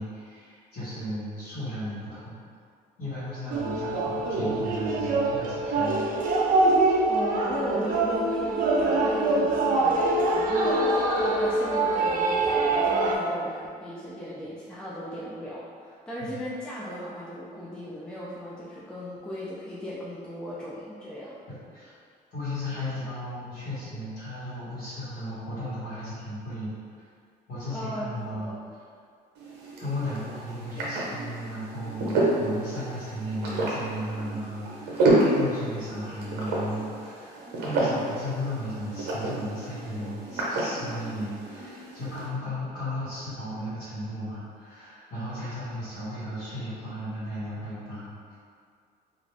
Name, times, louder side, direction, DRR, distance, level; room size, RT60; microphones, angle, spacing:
voice 1, 0.0-2.4 3.0-6.0 16.2-16.4 21.7-21.9 22.3-26.8 27.5-28.6 29.8-48.3, equal, 70° left, -13 dB, 1.3 m, -35 dB
voice 2, 3.4-3.9 7.1-21.4 27.7-28.5, equal, 5° left, -8 dB, 0.4 m, -37 dB
sound 1, 3.5-13.2, right 2 dB, 55° right, 0.5 m, -24 dB
sound 2, 29.4-42.3, right 2 dB, 85° right, 0.7 m, -29 dB
2.5 x 2.4 x 3.2 m, 2.2 s
cardioid pair, 110°, 17 cm